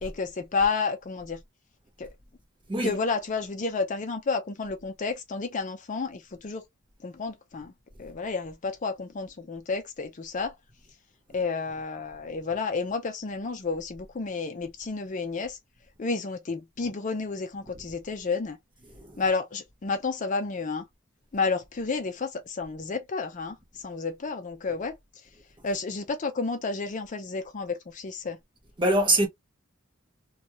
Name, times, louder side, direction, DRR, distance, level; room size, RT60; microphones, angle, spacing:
voice 1, 0.0-1.4 2.0-2.1 2.8-6.6 7.0-7.7 8.0-10.6 11.3-15.6 16.0-18.6 19.2-20.8 21.3-25.0 25.6-28.4, left 4 dB, 35° left, 0.4 m, -31 dB
voice 2, 28.8-29.3, right 1 dB, 25° right, 0.9 m, -23 dB
2.7 x 2.3 x 2.9 m
head